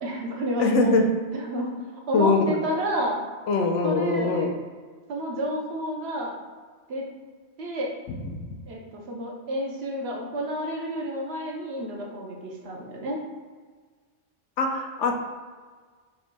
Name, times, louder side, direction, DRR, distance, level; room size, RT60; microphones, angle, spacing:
voice 1, 0.0-1.7 2.1-3.2 3.8-4.5 5.1-6.3 6.9-7.1 7.6-7.9 8.7-13.2, equal, 65° right, -1 dB, 0.9 m, -30 dB
voice 2, 0.6-1.0 2.1-2.5 3.5-4.5 14.6-15.1, left 4 dB, 80° left, 3 dB, 0.9 m, -22 dB
5.3 x 3.4 x 2.2 m, 1.5 s
omnidirectional pair, 1.2 m